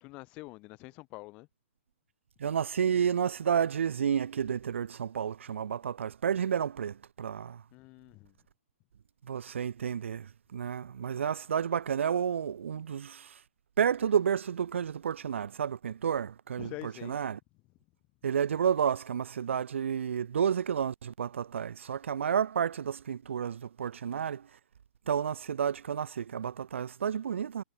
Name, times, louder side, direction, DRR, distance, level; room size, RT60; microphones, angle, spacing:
voice 1, 0.0-1.5 7.7-8.4 16.6-17.2, left 22 dB, 20° left, 0.7 m, -45 dB
voice 2, 2.4-7.6 9.2-13.4 13.8-17.4 18.2-24.5 25.1-27.6, right 8 dB, 90° right, 0.6 m, -31 dB
hypercardioid pair, 175°, 7 cm